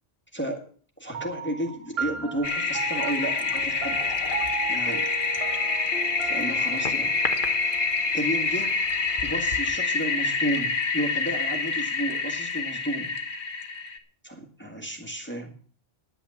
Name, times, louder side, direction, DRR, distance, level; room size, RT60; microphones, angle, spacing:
voice 1, 1.0-4.0 4.7-5.1 6.2-7.1 8.1-8.7 9.2-13.1 14.2-15.5, right 1 dB, 10° left, 1 dB, 1.8 m, -32 dB
sound 1, 1.1-10.0, right 6 dB, 75° right, 1.3 m, -37 dB
Toilet flush, 2.4-14.0, left 4 dB, 55° left, 1.3 m, -27 dB
10.0 x 9.3 x 7.1 m, 0.44 s
omnidirectional pair, 1.1 m